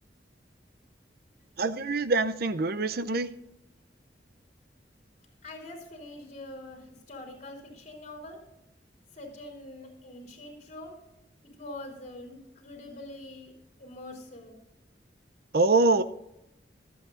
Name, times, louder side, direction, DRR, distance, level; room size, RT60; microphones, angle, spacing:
voice 1, 1.6-3.3 15.5-16.0, right 3 dB, 60° right, 11 dB, 0.6 m, -24 dB
voice 2, 5.4-8.4 9.1-11.0 11.5-13.5 13.8-14.6, left 1 dB, 40° left, 1 dB, 3.9 m, -44 dB
25.5 x 8.7 x 2.6 m, 0.86 s
head